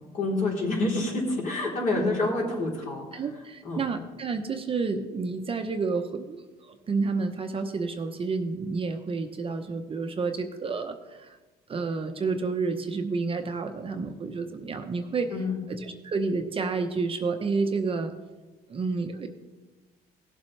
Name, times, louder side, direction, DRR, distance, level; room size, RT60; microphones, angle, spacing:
voice 1, 0.1-3.2 3.6-3.8 15.3-15.6, left 2 dB, 50° left, -3 dB, 3.7 m, -28 dB
voice 2, 3.1-11.4 11.7-15.3 15.7-18.1 18.7-19.3, right 4 dB, 35° right, 6 dB, 0.8 m, -30 dB
17.0 x 7.3 x 3.3 m, 1.2 s
cardioid pair, 110°, 17 cm